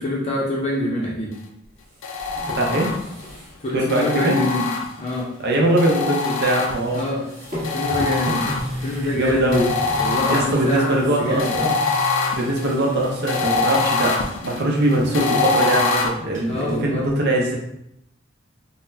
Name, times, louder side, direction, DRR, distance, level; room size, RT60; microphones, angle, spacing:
voice 1, 0.0-1.3 3.6-4.6 5.0-5.3 6.9-7.2 7.7-8.5 8.8-9.7 10.0-11.6 16.4-17.0, left 1 dB, 35° left, -5 dB, 0.6 m, -25 dB
sound 1, 1.7-3.6 3.9-4.0 5.7-6.0 6.2-13.6 14.0-14.5 14.7-16.8, left 1 dB, 40° right, 1.2 m, -35 dB
sound 2, 2.0-3.3 3.9-5.2 5.8-7.1 7.6-9.0 9.5-16.1, left 4 dB, 90° left, 0.4 m, -24 dB
voice 2, 2.5-2.9 3.7-4.3 5.4-7.1 7.9-8.1 8.8-9.7 10.3-11.7 12.3-14.2 14.4-17.6, right 1 dB, 60° right, -1 dB, 0.6 m, -21 dB
3.9 x 2.1 x 2.7 m, 0.80 s
head